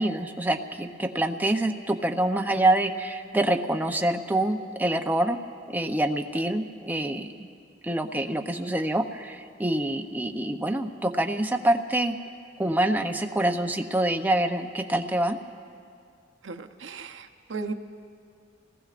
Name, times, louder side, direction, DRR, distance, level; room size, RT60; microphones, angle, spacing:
voice 1, 0.0-5.4 5.7-7.3 7.8-12.1 12.6-15.4, right 1 dB, 10° right, 4 dB, 0.6 m, -26 dB
voice 2, 16.4-17.7, right 4 dB, 70° right, 6 dB, 0.8 m, -36 dB
29.0 x 18.5 x 2.5 m, 2.4 s
head